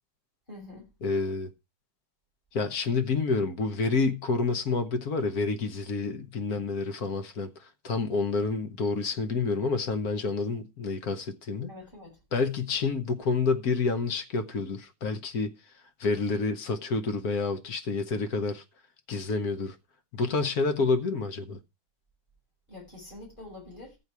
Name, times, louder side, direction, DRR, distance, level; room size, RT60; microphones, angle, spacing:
voice 1, 0.5-0.9 11.7-12.2 22.7-24.0, left 2 dB, 20° left, 6.7 m, -46 dB
voice 2, 1.0-1.5 2.5-11.7 12.3-15.5 16.0-18.6 19.1-19.8 20.1-21.6, left 4 dB, 55° left, 1.4 m, -28 dB
13.5 x 8.4 x 4.7 m
omnidirectional pair, 2.2 m